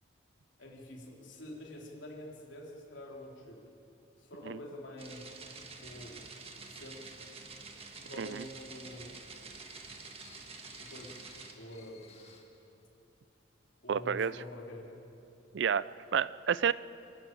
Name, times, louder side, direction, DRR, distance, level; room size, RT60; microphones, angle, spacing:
voice 1, 0.6-3.6 4.2-5.4 5.8-6.2 6.6-7.1 8.0-9.1 10.8-11.2 11.5-12.2 13.8-14.9 15.5-15.6, left 1 dB, 75° left, -1 dB, 3.5 m, -47 dB
sound 1, 5.0-11.5, right 4 dB, 30° right, 1.5 m, -48 dB
sound 2, 6.4-8.7 9.4-12.4, left 5 dB, 30° left, 2.1 m, -60 dB
voice 2, 13.9-14.3 15.5-16.7, right 7 dB, 65° right, 17 dB, 0.4 m, -30 dB
27.5 x 12.5 x 8.9 m, 2.9 s
head